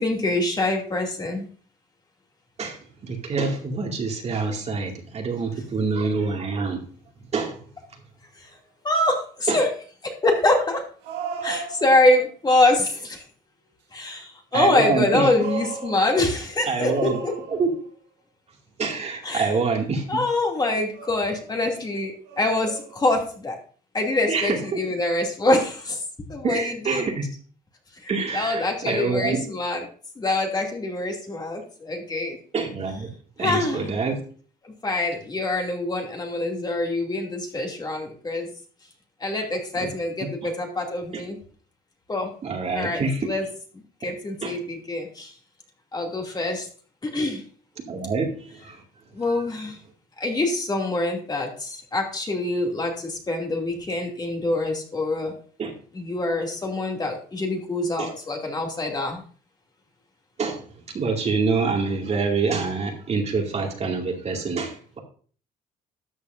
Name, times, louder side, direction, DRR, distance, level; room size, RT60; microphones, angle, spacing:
voice 1, 0.0-1.5 8.8-10.9 11.4-13.2 13.9-17.3 19.2-19.6 20.1-23.6 23.9-26.0 26.3-27.1 28.0-29.8 30.2-32.4 33.4-33.9 34.6-38.5 39.2-41.4 42.1-42.3 42.7-43.5 44.0-45.3 45.9-46.7 47.0-47.4 49.1-49.8 50.2-55.3 55.9-59.2, left 2 dB, 25° left, 1 dB, 2.6 m, -25 dB
voice 2, 2.6-6.8 7.3-7.6 9.5-9.6 14.5-15.3 16.6-17.2 17.5-17.7 18.8-20.0 24.3-24.8 26.4-27.3 28.1-29.4 32.5-33.1 33.4-34.2 39.4-39.5 39.8-39.9 40.4-40.5 41.1-41.2 42.4-43.3 44.4-44.6 47.9-48.8 55.6-55.7 58.0-58.1 60.4-65.0, right 4 dB, 40° right, 1 dB, 2.3 m, -26 dB
sound 1, 8.5-8.6 11.0-12.3 14.9-16.4 16.8-17.9 20.1-20.4 20.9-21.8 22.2-23.2, right 6 dB, 90° right, 1.8 m, -36 dB
13.0 x 8.2 x 2.6 m, 0.43 s
cardioid pair, 110°, 17 cm